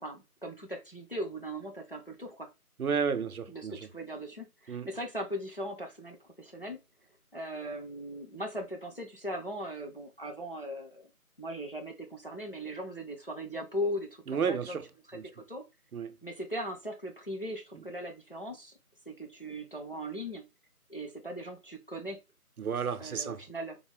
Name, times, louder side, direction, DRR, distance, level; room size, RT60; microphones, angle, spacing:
voice 1, 0.0-2.5 3.5-6.8 7.3-11.1 11.4-14.8 15.3-15.6 16.2-18.7 19.1-20.5 20.9-22.2 23.0-23.8, equal, 40° left, 0.5 m, -39 dB
voice 2, 2.8-3.9 4.7-4.9 14.3-14.9 15.1-15.3 15.9-16.2 17.7-17.8 22.6-23.4, right 6 dB, 70° right, 0.5 m, -32 dB
3.6 x 2.1 x 3.3 m
figure-of-eight pair, 165°, 45 cm